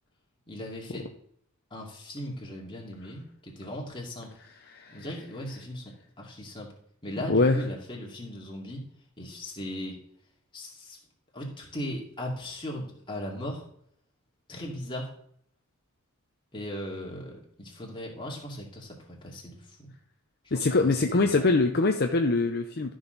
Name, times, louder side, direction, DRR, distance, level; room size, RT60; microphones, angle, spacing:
voice 1, 0.5-1.1 1.7-4.4 4.9-6.7 7.0-8.8 9.2-10.0 10.5-11.0 11.3-13.6 14.5-15.1 16.5-19.9 20.4-21.5, left 1 dB, 25° left, -2 dB, 2.5 m, -38 dB
voice 2, 4.7-5.0 7.3-7.6 20.5-22.9, left 3 dB, 45° left, 5 dB, 0.7 m, -23 dB
13.0 x 6.4 x 3.9 m, 0.67 s
head